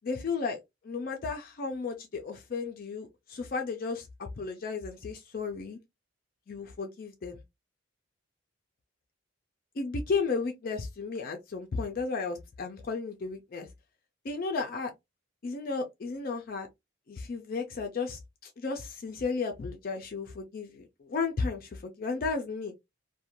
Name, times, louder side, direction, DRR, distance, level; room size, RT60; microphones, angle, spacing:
voice 1, 0.0-5.8 6.5-7.4 9.8-13.7 14.2-14.9 15.4-16.7 17.1-22.7, left 4 dB, 45° left, 0.3 m, -34 dB
2.4 x 2.1 x 2.8 m
head